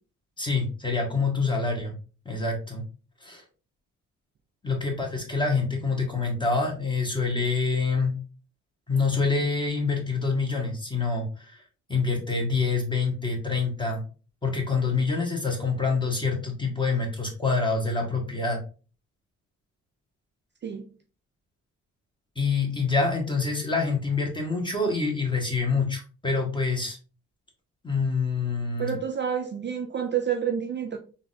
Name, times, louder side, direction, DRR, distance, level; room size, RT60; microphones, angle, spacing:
voice 1, 0.4-1.9 2.2-2.8 3.2-3.4 4.6-8.1 8.9-11.6 11.9-14.0 14.4-18.6 22.3-27.0 27.8-29.0, left 4 dB, 15° left, 1.4 m, -26 dB
voice 2, 28.8-31.0, right 8 dB, 35° right, 0.4 m, -29 dB
3.8 x 2.6 x 2.5 m
cardioid pair, 75°, 32 cm